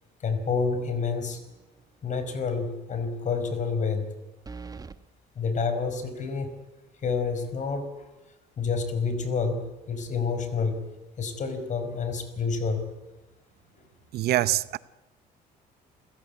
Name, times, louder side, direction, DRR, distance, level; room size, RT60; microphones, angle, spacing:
voice 1, 0.2-1.4 2.0-4.1 5.3-6.5 7.0-7.9 8.6-10.8 11.2-12.9, left 5 dB, 45° left, 5.1 m, -28 dB
sound 1, 1.3-1.8 2.2-2.3 4.4-5.0, right 4 dB, 20° right, 1.4 m, -42 dB
voice 2, 14.1-14.8, right 14 dB, 70° right, 0.9 m, -24 dB
29.0 x 16.5 x 9.7 m
cardioid pair, 110°, 17 cm